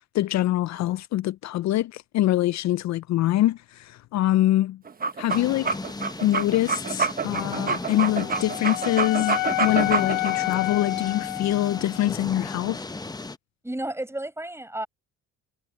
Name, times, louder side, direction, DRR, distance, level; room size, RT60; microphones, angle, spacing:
voice 1, 0.0-4.8 5.2-5.8 6.2-12.8, left 14 dB, 65° left, 0.4 m, -24 dB
sound 1, 4.9-10.3, right 5 dB, 30° right, 1.1 m, -27 dB
sound 2, 5.3-13.4, left 3 dB, 15° left, 0.8 m, -36 dB
Wind instrument woodwind instrument, 7.9-12.1, left 18 dB, 85° left, 0.8 m, -30 dB
voice 2, 13.6-14.9, right 1 dB, 10° right, 6.2 m, -32 dB
cardioid pair, 90°, 30 cm